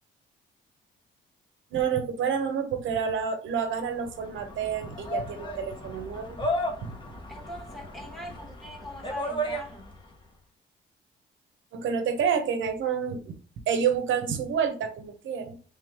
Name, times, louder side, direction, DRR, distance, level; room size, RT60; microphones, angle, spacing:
voice 1, 1.7-6.4 6.8-6.9 11.7-13.4 13.7-15.6, right 7 dB, 75° right, 0.9 m, -28 dB
sound 1, 3.8-10.1, equal, 25° left, 1.1 m, -35 dB
voice 2, 7.3-9.9, left 1 dB, ahead, 1.3 m, -41 dB
3.4 x 3.3 x 3.5 m
cardioid pair, 90°, 20 cm